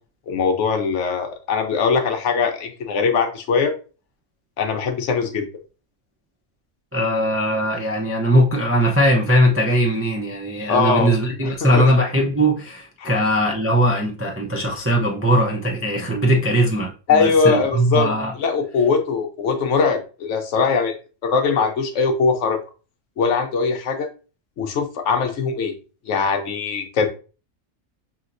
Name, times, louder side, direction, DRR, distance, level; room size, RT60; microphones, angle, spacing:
voice 1, 0.3-3.7 4.6-5.5 10.7-11.1 11.6-11.8 13.0-13.1 17.1-18.1 18.4-20.9 21.2-22.6 23.2-24.1 24.6-25.7 26.1-27.1, left 5 dB, 70° left, 1.0 m, -21 dB
voice 2, 6.9-18.3, equal, 20° right, 0.4 m, -20 dB
5.5 x 2.8 x 2.5 m
omnidirectional pair, 1.3 m